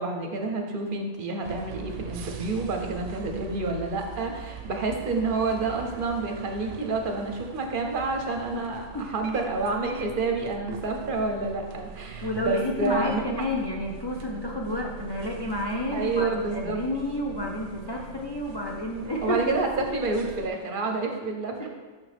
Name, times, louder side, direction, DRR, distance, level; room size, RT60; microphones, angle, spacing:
voice 1, 0.0-13.5 15.9-16.8 19.2-21.7, right 3 dB, 50° right, 3 dB, 0.8 m, -29 dB
sound 1, 1.4-20.5, right 7 dB, 85° right, 0.9 m, -42 dB
voice 2, 12.2-19.5 21.6-21.7, left 1 dB, 40° left, -2 dB, 0.3 m, -30 dB
6.3 x 5.8 x 3.4 m, 1.4 s
omnidirectional pair, 1.2 m